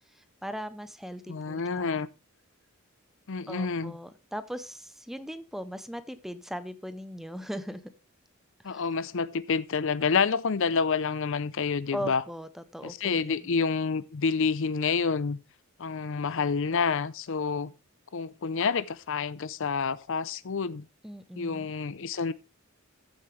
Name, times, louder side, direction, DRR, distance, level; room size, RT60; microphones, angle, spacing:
voice 1, 0.1-2.0 3.5-7.9 8.6-8.8 11.9-13.5 21.0-21.7, equal, ahead, 0.7 m, -39 dB
voice 2, 1.3-2.1 3.3-3.9 8.6-12.2 12.8-15.4 15.8-17.7 18.1-20.9 21.4-22.3, left 5 dB, 60° left, 0.6 m, -28 dB
14.5 x 7.4 x 3.3 m
head